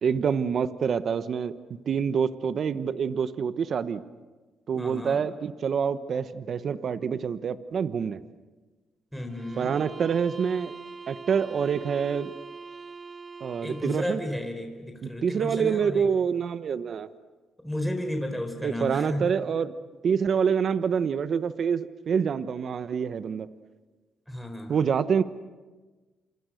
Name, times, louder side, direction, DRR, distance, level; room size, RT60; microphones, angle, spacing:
voice 1, 0.0-1.5 1.9-4.0 4.7-8.2 9.6-10.7 11.1-12.3 13.4-14.2 15.0-17.1 18.6-19.7 20.0-23.5 24.7-25.2, right 7 dB, 55° right, 12 dB, 1.0 m, -26 dB
voice 2, 4.8-5.3 9.1-9.8 13.6-16.1 17.6-19.3 24.3-24.9, left 1 dB, ahead, 4 dB, 4.4 m, -33 dB
sound 1, 9.3-14.2, right 4 dB, 35° right, 1.2 m, -43 dB
29.5 x 27.0 x 6.5 m, 1.3 s
cardioid pair, 90°, 0 cm